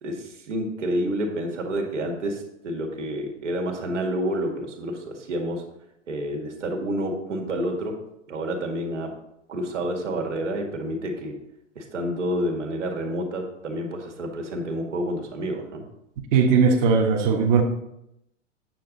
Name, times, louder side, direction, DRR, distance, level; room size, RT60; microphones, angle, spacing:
voice 1, 0.0-5.6 6.1-7.9 8.3-9.1 9.5-11.4 11.8-15.8, right 1 dB, 70° right, 2 dB, 2.0 m, -29 dB
voice 2, 16.3-17.6, right 5 dB, 40° right, 1 dB, 1.4 m, -18 dB
9.2 x 7.0 x 4.0 m, 0.82 s
figure-of-eight pair, 100°, 37 cm